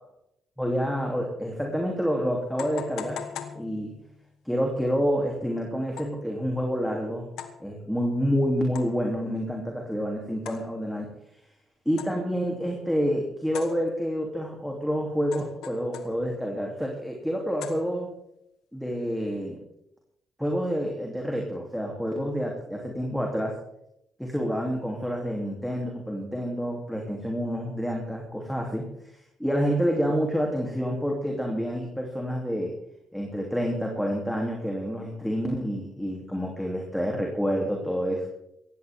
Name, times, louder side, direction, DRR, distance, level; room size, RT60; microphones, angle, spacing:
voice 1, 0.6-3.3 3.5-3.9 4.4-7.3 7.6-11.1 11.8-18.1 18.7-19.6 20.4-23.6 24.2-32.8 33.1-38.3, equal, ahead, 0 dB, 3.1 m, -28 dB
sound 1, 1.6-1.7 2.6-4.3 6.0-6.3 7.4-7.7 8.8-9.2 10.5-11.1 12.0-12.4 13.5-14.3 15.3-16.5 17.6-18.3, left 8 dB, 85° left, 1.4 m, -41 dB
17.5 x 15.0 x 3.7 m, 0.79 s
cardioid pair, 90°, 0 cm